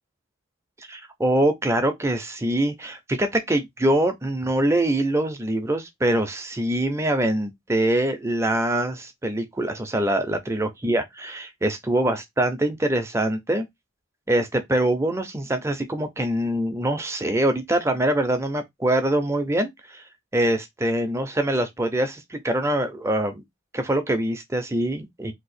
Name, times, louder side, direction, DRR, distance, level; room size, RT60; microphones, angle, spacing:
voice 1, 0.9-13.7 14.3-20.0 20.3-23.4 23.7-25.3, right 1 dB, 15° right, 0.4 m, -24 dB
2.7 x 2.3 x 4.0 m
head